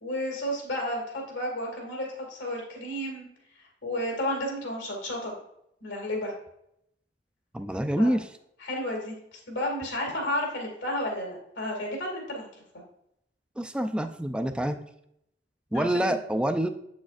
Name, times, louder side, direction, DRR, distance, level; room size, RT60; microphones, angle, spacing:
voice 1, 0.0-3.3 3.8-5.3 5.8-6.3 8.0-8.1 8.6-12.5 15.7-16.2, left 1 dB, 90° left, 0 dB, 2.2 m, -32 dB
voice 2, 7.5-8.3 13.6-14.8 15.7-16.7, right 1 dB, 5° right, 8 dB, 0.4 m, -26 dB
8.0 x 6.3 x 2.5 m, 0.76 s
head